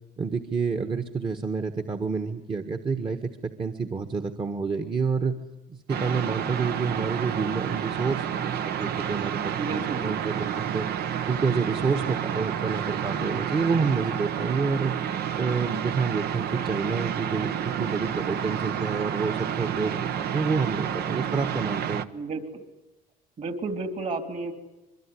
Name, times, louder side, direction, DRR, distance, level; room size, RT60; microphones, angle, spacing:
voice 1, 0.2-5.4 5.7-10.9 11.3-14.9 15.4-22.0, right 5 dB, 30° right, 6 dB, 1.5 m, -28 dB
sound 1, 5.9-22.1, right 9 dB, 70° right, 1.1 m, -30 dB
voice 2, 9.6-10.0 22.1-22.6 23.4-24.5, right 3 dB, 45° right, 7 dB, 3.6 m, -32 dB
25.5 x 22.5 x 9.9 m, 1.0 s
cardioid pair, 110°, 17 cm